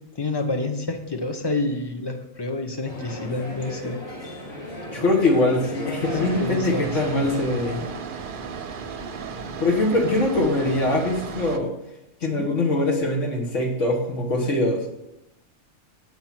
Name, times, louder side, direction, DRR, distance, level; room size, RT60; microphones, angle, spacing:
voice 1, 0.1-4.0 6.2-6.9 12.3-12.5, left 2 dB, 25° left, 4 dB, 0.8 m, -28 dB
sound 1, 2.8-7.9, left 1 dB, 65° left, 1.9 m, -36 dB
voice 2, 4.9-7.8 9.6-11.7 12.2-14.8, left 2 dB, 85° left, -2 dB, 1.8 m, -22 dB
sound 2, 6.0-11.6, right 5 dB, 55° right, 0.7 m, -35 dB
7.6 x 5.4 x 5.9 m, 0.90 s
omnidirectional pair, 1.2 m